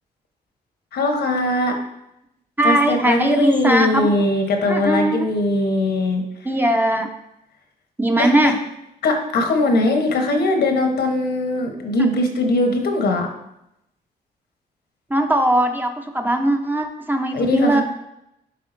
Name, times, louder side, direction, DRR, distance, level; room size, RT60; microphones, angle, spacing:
voice 1, 0.9-1.8 2.6-6.2 8.2-8.5 9.0-13.3 17.3-17.8, left 2 dB, 70° left, 4 dB, 1.1 m, -20 dB
voice 2, 2.6-4.1 4.7-5.3 6.4-7.1 8.0-8.6 15.1-17.8, right 1 dB, 10° right, 4 dB, 0.7 m, -19 dB
10.5 x 3.5 x 2.6 m, 0.83 s
cardioid pair, 85°, 18 cm